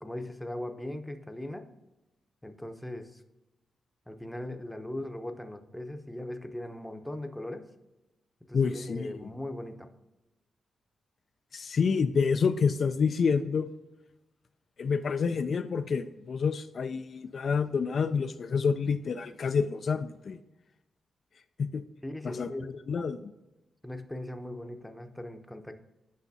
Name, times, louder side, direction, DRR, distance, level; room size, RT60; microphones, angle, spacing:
voice 1, 0.0-1.7 2.4-3.2 4.1-7.6 8.5-9.9 22.0-22.8 23.8-25.7, left 1 dB, 5° left, 7 dB, 0.7 m, -39 dB
voice 2, 8.5-9.3 11.5-13.7 14.8-20.4 21.6-21.8 22.2-22.5 22.9-23.3, left 5 dB, 60° left, 9 dB, 0.3 m, -28 dB
8.3 x 5.5 x 2.7 m, 1.0 s
cardioid pair, 75°, 0 cm